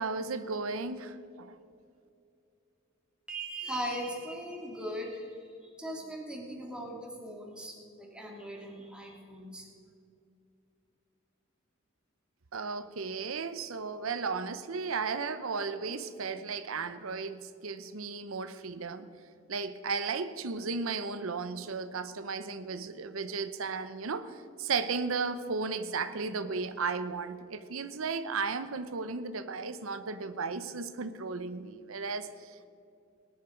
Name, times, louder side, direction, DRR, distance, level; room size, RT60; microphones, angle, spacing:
voice 1, 0.0-1.6 12.5-19.1 19.5-32.6, right 4 dB, 90° right, 11 dB, 0.7 m, -35 dB
voice 2, 3.3-9.7, equal, 5° right, -1 dB, 2.5 m, -39 dB
19.0 x 10.5 x 5.1 m, 2.5 s
head